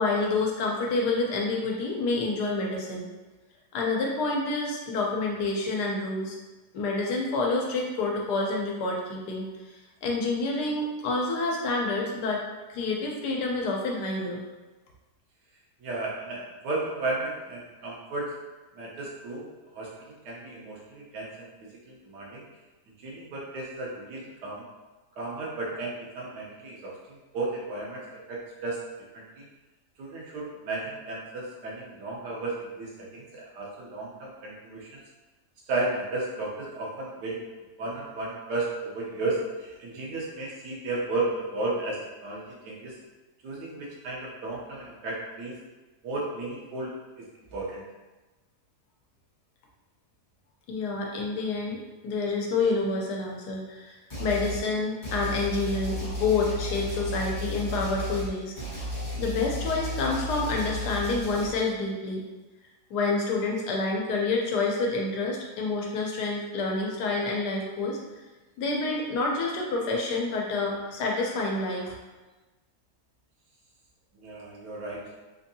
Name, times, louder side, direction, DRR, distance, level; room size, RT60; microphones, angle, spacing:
voice 1, 0.0-3.1 3.7-6.3 6.7-9.5 10.0-12.4 12.7-14.4 50.7-58.8 59.2-62.2 62.9-68.0 68.6-71.9, left 3 dB, 80° left, -1 dB, 1.3 m, -28 dB
voice 2, 15.8-18.3 18.7-19.5 19.7-21.5 21.8-22.5 23.0-24.6 25.2-28.8 29.1-29.5 30.0-35.0 35.7-37.4 37.8-43.0 43.4-45.6 46.0-46.9 47.2-47.8 74.1-75.1, right 2 dB, 85° right, -4 dB, 1.4 m, -34 dB
sound 1, 54.1-54.6 55.0-61.5, left 1 dB, 20° left, 1.1 m, -33 dB
3.7 x 2.6 x 2.6 m, 1.2 s
omnidirectional pair, 1.7 m